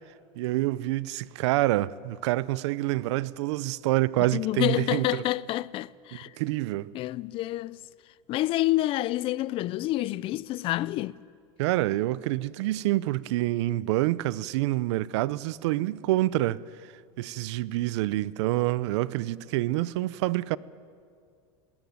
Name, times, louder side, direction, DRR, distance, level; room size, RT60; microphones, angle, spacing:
voice 1, 0.4-5.2 6.4-6.9 11.6-16.6 17.2-20.6, right 17 dB, 75° right, 0.6 m, -27 dB
voice 2, 4.3-6.4 6.9-7.8 8.3-11.2, left 16 dB, 40° left, 0.5 m, -28 dB
20.5 x 18.5 x 9.5 m
supercardioid pair, 145°, 15 cm